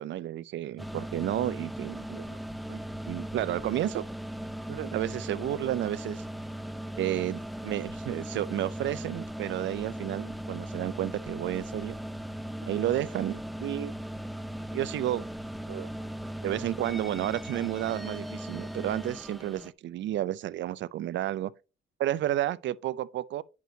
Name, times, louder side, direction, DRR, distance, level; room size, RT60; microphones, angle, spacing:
voice 1, 0.0-2.4 2.7-2.8 3.1-4.0 4.7-6.2 7.0-12.0 12.7-13.9 14.7-15.3 15.7-15.9 16.4-21.5 22.0-23.4, right 13 dB, 70° right, 0.5 m, -31 dB
sound 1, 0.8-19.7, right 1 dB, ahead, 0.4 m, -38 dB
9.4 x 6.0 x 2.8 m
cardioid pair, 90°, 20 cm